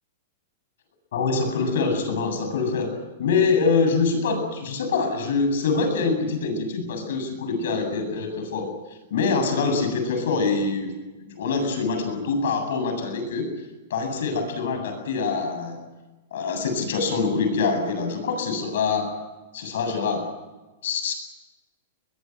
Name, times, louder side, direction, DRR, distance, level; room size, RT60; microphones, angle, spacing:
voice 1, 1.1-2.9 3.2-8.7 9.1-10.9 11.2-13.5 13.9-15.8 16.3-19.1 19.5-20.3 20.8-21.1, left 4 dB, 70° left, 6 dB, 7.9 m, -24 dB
22.5 x 21.0 x 9.3 m, 1.2 s
hypercardioid pair, 155°, 0 cm